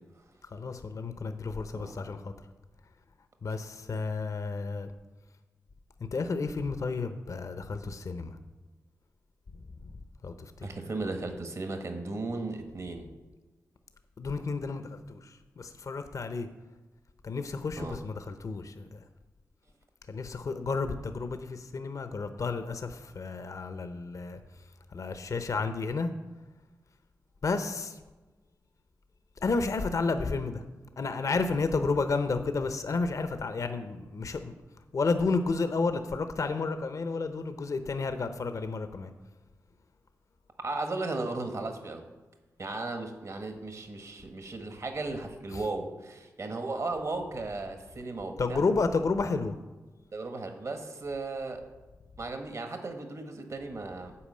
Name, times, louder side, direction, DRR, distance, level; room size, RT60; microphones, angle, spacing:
voice 1, 0.5-2.3 3.4-4.9 6.1-8.4 9.8-9.9 10.2-10.5 14.2-16.5 17.2-19.0 20.1-24.4 24.9-26.1 27.4-28.0 29.4-30.6 31.0-34.5 34.9-39.1 48.4-49.6, left 4 dB, 60° left, 9 dB, 0.7 m, -31 dB
voice 2, 10.6-13.1 17.8-18.0 40.6-42.0 42.6-48.6 50.1-51.6 52.2-54.2, right 3 dB, 55° right, 5 dB, 1.4 m, -36 dB
8.7 x 4.7 x 7.5 m, 1.2 s
supercardioid pair, 40°, 6 cm